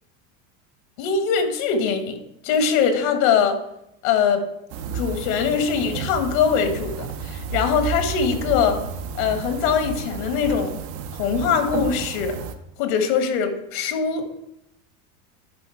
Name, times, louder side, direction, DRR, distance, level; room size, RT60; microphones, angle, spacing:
voice 1, 1.0-2.2 2.4-3.6 4.0-4.4 4.9-8.8 9.1-10.8 11.2-12.4 12.8-14.2, left 6 dB, 75° left, 6 dB, 1.4 m, -22 dB
sound 1, 4.7-12.6, right 6 dB, 45° right, 0.6 m, -32 dB
11.0 x 4.2 x 4.4 m, 0.81 s
supercardioid pair, 160°, 42 cm